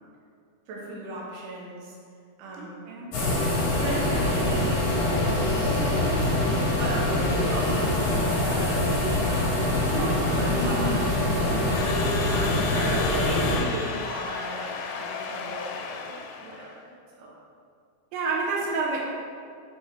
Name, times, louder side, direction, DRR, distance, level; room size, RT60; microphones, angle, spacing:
voice 1, 0.7-2.0 2.4-2.9 3.7-6.5 6.8-8.9 9.3-11.8 12.3-12.7 13.0-16.9 17.2-17.3, right 1 dB, 70° right, -5 dB, 2.6 m, -36 dB
voice 2, 2.6-3.1 10.5-11.8 12.7-13.1 13.6-13.7 18.1-19.1, right 3 dB, 85° right, -2 dB, 2.6 m, -30 dB
sound 1, 3.1-13.6, left 1 dB, 65° left, 2.5 m, -24 dB
Crowd / Alarm, 11.2-16.7, left 5 dB, 90° left, 2.4 m, -34 dB
8.7 x 4.1 x 3.3 m, 2.3 s
omnidirectional pair, 4.2 m